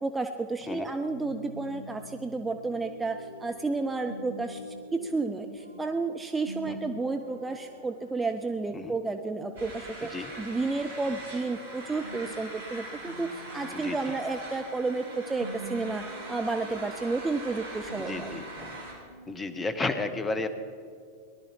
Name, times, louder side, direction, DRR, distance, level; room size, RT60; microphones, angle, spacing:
voice 1, 0.0-4.6 4.9-10.1 10.4-18.3, right 3 dB, 10° right, 6 dB, 0.6 m, -31 dB
sound 1, 1.1-19.9, equal, 80° left, 2.3 m, -46 dB
sound 2, 9.6-18.9, right 2 dB, 60° right, 3.0 m, -42 dB
voice 2, 10.0-10.3 13.7-14.1 18.0-18.8 19.3-20.5, left 3 dB, 15° left, 10 dB, 0.9 m, -33 dB
18.5 x 12.0 x 4.6 m, 2.2 s
figure-of-eight pair, 90°, 0 cm